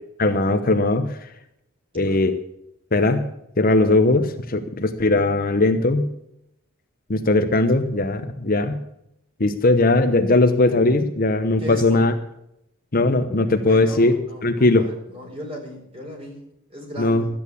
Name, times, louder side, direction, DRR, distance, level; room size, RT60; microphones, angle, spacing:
voice 1, 0.2-1.3 1.9-2.4 2.9-3.2 3.6-6.1 7.1-8.8 9.4-12.1 12.9-14.2 14.4-14.9 17.0-17.2, left 2 dB, 45° left, 7 dB, 0.9 m, -19 dB
voice 2, 11.6-12.1 13.7-16.4 16.7-17.3, left 1 dB, 30° right, 0 dB, 4.5 m, -36 dB
13.0 x 9.0 x 8.4 m, 0.80 s
head